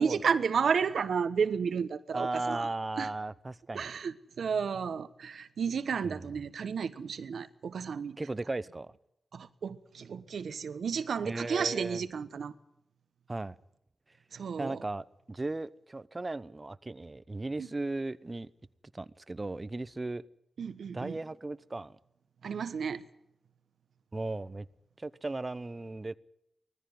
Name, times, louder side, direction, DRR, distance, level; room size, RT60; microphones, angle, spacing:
voice 1, 0.0-2.7 3.0-3.1 3.7-8.2 9.3-12.5 14.3-14.8 17.6-17.7 20.6-21.2 22.4-23.0, right 6 dB, 80° right, 13 dB, 1.1 m, -32 dB
voice 2, 2.1-3.9 6.0-6.3 8.2-8.9 11.2-12.0 13.3-13.5 14.6-18.5 18.9-20.3 20.9-22.0 24.1-24.7 25.0-26.2, right 2 dB, 30° right, 16 dB, 0.9 m, -36 dB
20.0 x 14.5 x 9.4 m, 0.82 s
cardioid pair, 65°, 0 cm